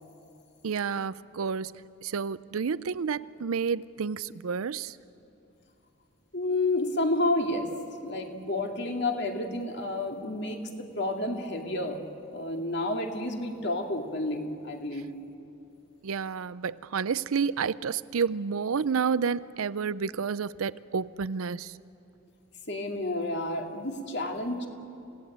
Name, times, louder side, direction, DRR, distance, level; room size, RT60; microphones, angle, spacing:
voice 1, 0.6-5.0 16.0-21.8, right 6 dB, 80° right, 0.5 m, -30 dB
voice 2, 6.3-7.7 8.0-12.0 12.3-15.1 22.7-24.7, left 2 dB, 50° left, 2.4 m, -30 dB
29.5 x 17.0 x 8.7 m
head